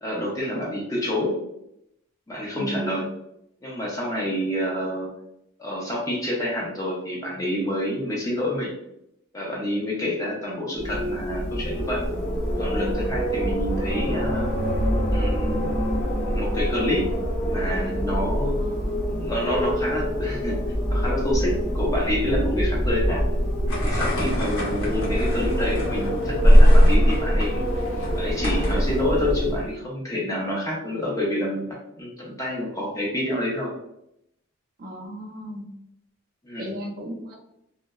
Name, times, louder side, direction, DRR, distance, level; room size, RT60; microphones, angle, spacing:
voice 1, 0.0-1.3 2.3-3.1 3.6-5.1 5.6-8.7 9.3-12.0 12.6-14.5 15.1-15.8 16.3-17.0 17.4-18.6 19.2-20.6 20.9-23.2 23.8-27.8 28.1-33.7 36.4-36.7, left 1 dB, 15° left, -3 dB, 0.5 m, -28 dB
voice 2, 2.5-3.0 18.6-19.2 34.8-35.7 36.6-37.3, equal, 40° right, -1 dB, 0.4 m, -35 dB
Wind, 10.7-29.8, equal, 35° left, 0.9 m, -23 dB
sound 1, 23.7-29.0, left 1 dB, 75° left, 0.8 m, -33 dB
2.6 x 2.1 x 2.2 m, 0.80 s
head